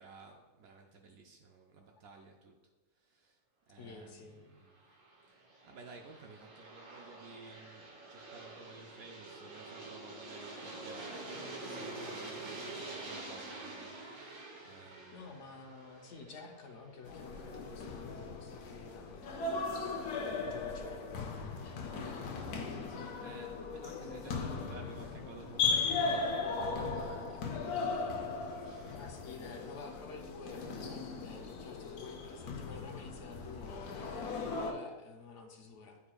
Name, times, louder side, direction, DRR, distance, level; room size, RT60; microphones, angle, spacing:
voice 1, 0.0-2.6 3.0-3.4 3.7-4.8 5.3-15.3 22.7-29.0, right 3 dB, 70° right, 2 dB, 1.0 m, -55 dB
voice 2, 3.8-4.4 15.1-22.2 28.9-36.0, left 4 dB, 60° left, 2 dB, 0.9 m, -50 dB
Aircraft, 4.7-17.5, right 2 dB, 90° right, 1.7 m, -47 dB
sound 1, 17.1-34.7, left 4 dB, 80° left, 1.3 m, -37 dB
9.5 x 4.4 x 2.3 m, 1.1 s
omnidirectional pair, 1.6 m